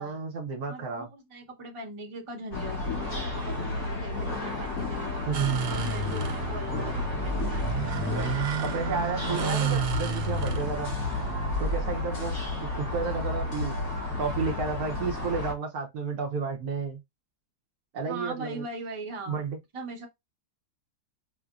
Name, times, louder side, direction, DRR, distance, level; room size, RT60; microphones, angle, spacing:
voice 1, 0.0-1.1 5.3-5.5 8.1-8.3 8.6-10.9 11.6-12.4 12.7-13.8 14.2-17.0 17.9-18.6 19.3-19.6, right 4 dB, 65° right, 1.1 m, -32 dB
voice 2, 0.7-5.3 5.7-8.1 18.1-19.4 19.7-20.1, right 2 dB, 25° right, 0.8 m, -40 dB
sound 1, 2.5-15.5, left 3 dB, 55° left, 1.7 m, -32 dB
sound 2, 5.3-13.7, right 6 dB, 85° right, 1.3 m, -31 dB
5.6 x 2.1 x 2.3 m
omnidirectional pair, 1.8 m